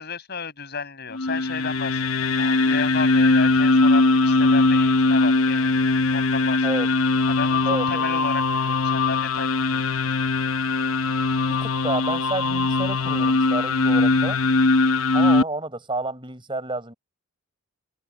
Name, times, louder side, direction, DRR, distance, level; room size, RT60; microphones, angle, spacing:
voice 1, 0.0-5.8 6.1-6.7 7.3-7.6 7.9-9.9, left 5 dB, 50° left, 5.9 m, -33 dB
sound 1, 1.1-15.4, left 3 dB, 70° left, 0.8 m, -20 dB
voice 2, 7.6-8.0 11.5-14.4 15.1-16.9, right 2 dB, 20° right, 6.5 m, -30 dB
head